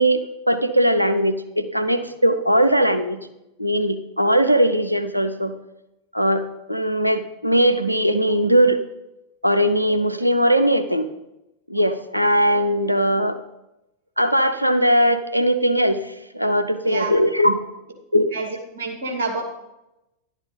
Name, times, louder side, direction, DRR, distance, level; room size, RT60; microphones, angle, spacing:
voice 1, 0.0-3.2 3.6-5.5 6.1-6.4 6.7-8.8 9.4-11.1 11.7-13.4 14.2-17.6 18.1-18.3, equal, 90° right, 9 dB, 0.7 m, -19 dB
voice 2, 18.7-19.4, right 4 dB, 60° right, 2 dB, 2.4 m, -27 dB
11.5 x 9.8 x 3.9 m, 0.92 s
figure-of-eight pair, 90°, 0 cm